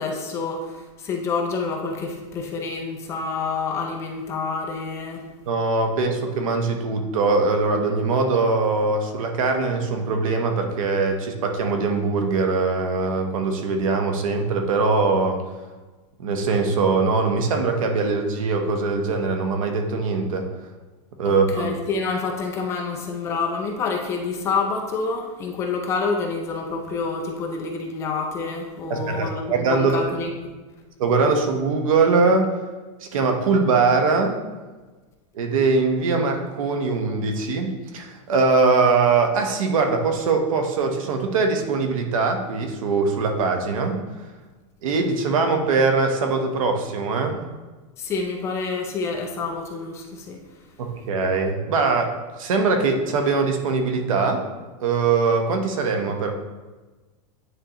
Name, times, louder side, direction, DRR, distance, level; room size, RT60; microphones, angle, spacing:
voice 1, 0.0-5.3 21.2-30.5 48.0-50.4, left 4 dB, 15° left, 2 dB, 0.5 m, -28 dB
voice 2, 5.4-15.4 16.2-20.5 21.2-21.7 28.9-30.1 31.0-32.5 33.0-34.4 35.3-44.0 44.8-47.4 50.8-54.4 54.8-56.3, right 4 dB, 85° right, 4 dB, 1.1 m, -22 dB
9.6 x 3.7 x 3.0 m, 1.3 s
supercardioid pair, 175°, 17 cm